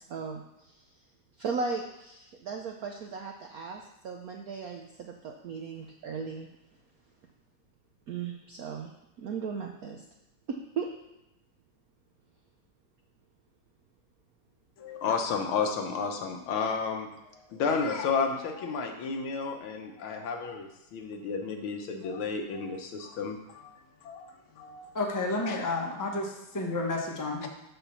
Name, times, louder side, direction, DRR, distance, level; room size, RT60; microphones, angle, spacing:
voice 1, 0.1-0.8 1.4-6.5 8.1-8.9 9.2-10.0 10.5-10.9, right 5 dB, 70° right, 2 dB, 0.8 m, -36 dB
voice 2, 14.8-23.7 24.0-24.9 25.4-25.6 27.4-27.5, left 5 dB, 80° left, 4 dB, 1.8 m, -32 dB
voice 3, 24.9-27.5, left 2 dB, 15° left, 0 dB, 0.6 m, -31 dB
6.0 x 5.5 x 6.8 m, 0.92 s
omnidirectional pair, 2.3 m